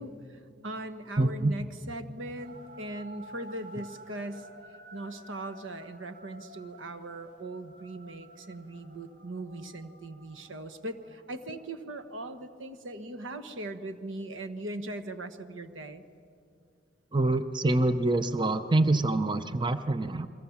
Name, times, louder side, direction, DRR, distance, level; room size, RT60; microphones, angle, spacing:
voice 1, 0.0-4.5 4.9-16.0, right 1 dB, 85° right, 9 dB, 1.3 m, -40 dB
voice 2, 1.2-1.6 17.1-20.3, right 2 dB, 25° right, 10 dB, 0.7 m, -26 dB
sound 1, 2.4-11.8, right 1 dB, 45° right, 3.3 m, -52 dB
29.5 x 22.5 x 7.2 m, 2.5 s
head